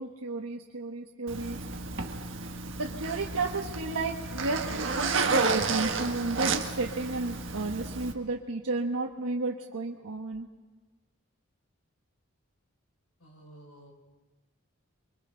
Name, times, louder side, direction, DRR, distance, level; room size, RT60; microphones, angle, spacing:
voice 1, 0.0-1.6 2.8-10.5, right 3 dB, 85° right, 0 dB, 1.3 m, -32 dB
Zipper (clothing), 1.3-8.1, right 4 dB, 60° right, 1.5 m, -31 dB
voice 2, 13.2-13.9, right 1 dB, 90° left, 2 dB, 5.0 m, -52 dB
29.5 x 23.5 x 3.9 m, 1.2 s
head